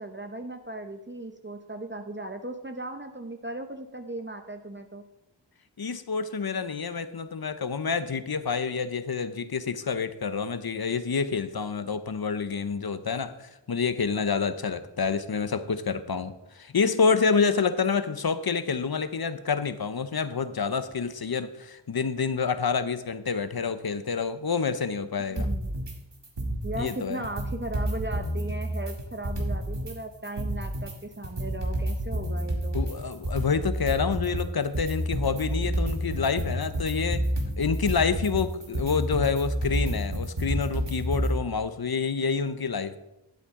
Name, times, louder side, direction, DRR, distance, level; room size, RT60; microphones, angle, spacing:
voice 1, 0.0-5.0 25.3-25.9 26.6-32.8, right 2 dB, 25° right, 6 dB, 0.7 m, -37 dB
voice 2, 5.8-25.5 26.8-27.2 32.7-37.3 37.6-43.0, left 5 dB, 55° left, 12 dB, 0.7 m, -28 dB
sound 1, 25.4-25.9 26.2-26.9 27.2-29.9 30.2-41.4, right 1 dB, 65° right, 1.8 m, -29 dB
11.5 x 8.1 x 3.7 m, 0.89 s
wide cardioid pair, 55°, 45 cm